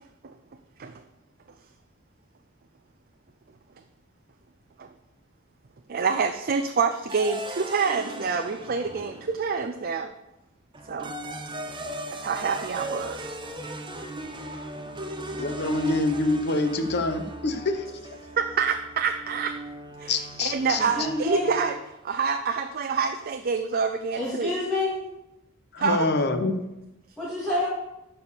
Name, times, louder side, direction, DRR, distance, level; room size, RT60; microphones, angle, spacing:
voice 1, 5.9-10.1 10.9-11.2 12.1-13.4 18.3-19.6 20.0-21.8 22.0-24.5 25.8-26.1, right 5 dB, 45° right, 7 dB, 0.5 m, -27 dB
sound 1, 7.1-9.7 10.7-21.9, right 2 dB, 25° right, 0.9 m, -38 dB
voice 2, 15.4-18.0 20.1-20.8 25.7-26.6, left 2 dB, 55° left, 7 dB, 1.0 m, -26 dB
voice 3, 20.8-21.6 24.1-25.0 26.3-26.4 27.2-27.7, left 1 dB, ahead, -10 dB, 2.2 m, -28 dB
12.0 x 4.5 x 6.9 m, 0.95 s
head